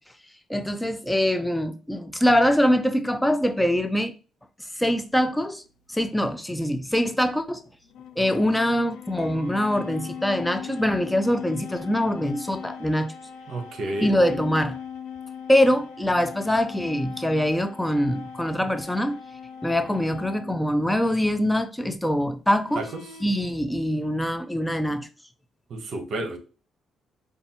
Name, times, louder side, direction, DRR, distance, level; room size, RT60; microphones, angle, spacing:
voice 1, 0.5-4.1 4.8-5.6 5.9-7.6 8.2-13.1 14.0-14.8 15.5-19.2 19.6-22.9 23.2-25.1, equal, 5° left, 0.4 m, -23 dB
sound 1, 5.3-5.5 7.9-21.0 22.6-23.5, left 7 dB, 90° left, 0.4 m, -39 dB
Chink clink, 9.2-13.5 14.0-14.4, right 5 dB, 15° right, 1.3 m, -53 dB
voice 2, 13.5-14.1 22.8-22.9 25.7-26.4, right 2 dB, 60° right, 0.9 m, -30 dB
5.1 x 2.3 x 2.8 m
cardioid pair, 90°, 0 cm